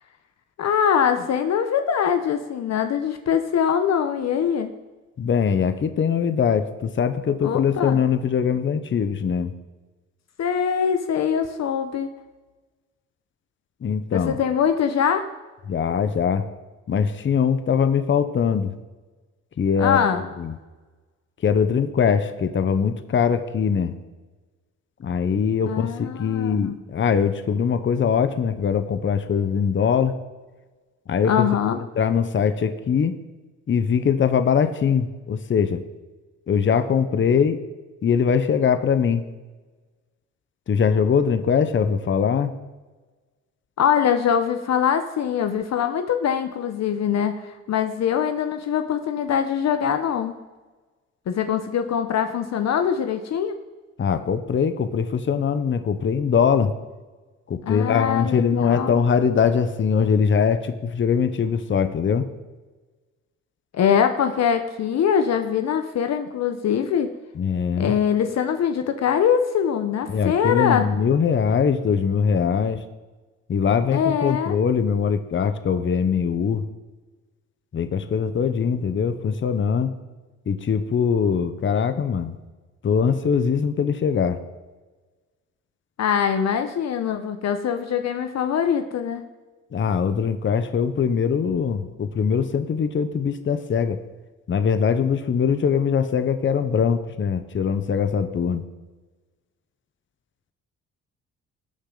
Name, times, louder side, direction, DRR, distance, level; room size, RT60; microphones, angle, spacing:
voice 1, 0.6-4.7 7.4-8.0 10.4-12.1 14.1-15.3 19.8-20.3 25.6-26.8 31.3-31.8 43.8-50.4 51.3-53.6 57.7-58.9 63.7-67.1 67.8-70.9 73.9-74.5 86.0-89.2, left 8 dB, 60° left, 8 dB, 0.9 m, -23 dB
voice 2, 5.2-9.5 13.8-14.4 15.7-16.5 16.9-18.7 19.6-20.5 21.4-23.9 25.0-30.2 31.1-33.1 33.7-35.8 36.5-37.6 38.0-39.3 40.7-42.5 54.0-56.7 57.5-62.3 67.3-68.0 70.1-72.8 73.5-76.6 77.7-80.0 80.5-82.3 82.8-84.4 89.7-94.0 94.5-98.6, left 6 dB, 40° left, 10 dB, 0.9 m, -22 dB
18.5 x 7.0 x 3.9 m, 1.2 s
cardioid pair, 90°, 30 cm